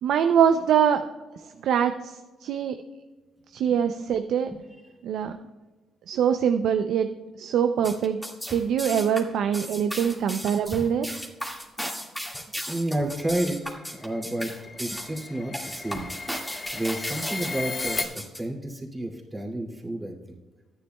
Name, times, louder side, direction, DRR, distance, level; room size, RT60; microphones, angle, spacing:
voice 1, 0.0-1.0 1.6-2.8 3.5-4.5 5.0-5.3 6.1-7.1 7.4-8.2 8.5-11.1, right 8 dB, 75° right, 7 dB, 0.5 m, -23 dB
sound 1, 7.8-18.4, equal, 5° left, 1.9 m, -35 dB
voice 2, 12.7-14.5 14.8-16.1 16.7-20.1, right 1 dB, 15° right, -1 dB, 2.3 m, -31 dB
sound 2, 13.4-18.1, left 4 dB, 35° left, 0.7 m, -36 dB
13.5 x 9.9 x 2.3 m, 1.3 s
cardioid pair, 90°, 0 cm